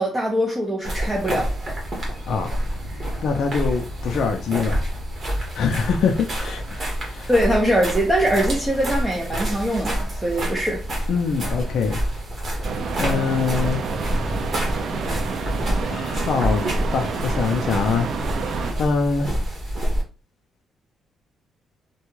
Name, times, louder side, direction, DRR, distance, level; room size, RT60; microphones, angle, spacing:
voice 1, 0.0-1.8 7.3-10.8, equal, 10° right, 0.8 m, -22 dB
sound 1, 0.8-20.0, equal, 45° right, 1.4 m, -28 dB
voice 2, 3.2-4.7 5.5-7.3 11.1-12.0 13.0-13.8 15.9-18.1 18.8-19.3, left 5 dB, 65° left, 0.4 m, -24 dB
sound 2, 12.6-18.7, right 4 dB, 60° right, 0.5 m, -29 dB
3.4 x 2.3 x 3.1 m
cardioid pair, 90°, 0 cm